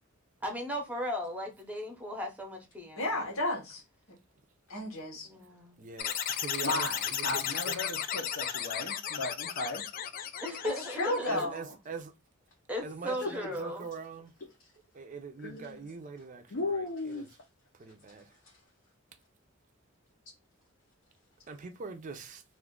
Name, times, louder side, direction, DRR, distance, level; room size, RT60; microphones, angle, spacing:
voice 1, 0.4-3.3 5.2-5.8 10.4-11.5 12.7-13.9, left 1 dB, 5° right, 0.7 m, -37 dB
voice 2, 3.0-3.8 4.1-4.2 4.7-5.3 10.6-11.7, left 1 dB, 85° left, 1.1 m, -33 dB
voice 3, 5.8-7.8 11.3-12.1 12.8-14.3 14.9-17.3 17.7-18.4 21.5-22.4, right 5 dB, 40° right, 0.5 m, -43 dB
sound 1, 6.0-11.4, left 9 dB, 45° left, 0.3 m, -35 dB
voice 4, 6.6-9.8 10.2-10.3 13.2-13.5 15.4-15.9 16.5-17.4, left 2 dB, 65° left, 0.7 m, -36 dB
2.5 x 2.4 x 3.6 m
head